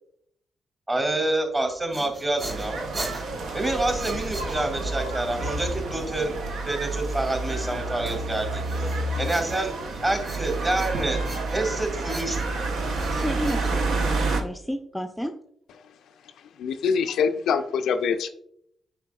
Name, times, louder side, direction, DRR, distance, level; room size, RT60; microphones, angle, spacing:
voice 1, 0.9-2.9 3.5-6.3 6.6-8.6 9.2-9.7 10.0-11.2 11.5-12.6, right 2 dB, 30° right, 4 dB, 2.5 m, -27 dB
sound 1, 1.6-5.0 8.1-9.9 10.2-11.8 12.1-14.3, right 1 dB, 45° right, 1.8 m, -40 dB
sound 2, 2.4-14.4, right 2 dB, 70° right, 0.8 m, -29 dB
voice 2, 13.1-15.3, equal, 5° left, 6 dB, 0.5 m, -32 dB
voice 3, 16.6-18.3, left 6 dB, 70° left, 8 dB, 0.4 m, -24 dB
9.3 x 4.5 x 2.3 m, 0.70 s
hypercardioid pair, 40°, 0 cm